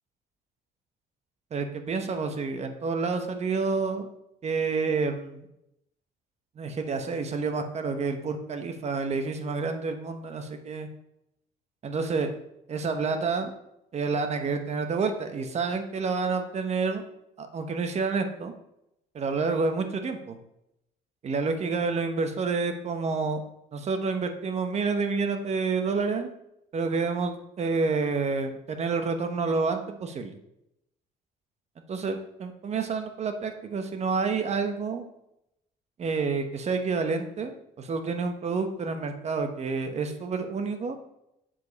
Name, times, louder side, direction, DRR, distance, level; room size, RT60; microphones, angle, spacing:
voice 1, 1.5-4.1 4.4-5.5 6.6-10.9 11.8-12.3 12.7-13.5 13.9-17.0 17.4-18.5 19.1-20.4 21.2-23.4 23.7-26.3 26.7-30.4 31.9-35.0 36.0-37.5 37.8-41.0, right 4 dB, 40° right, 7 dB, 1.1 m, -29 dB
7.5 x 7.0 x 4.1 m, 0.83 s
cardioid pair, 110°, 17 cm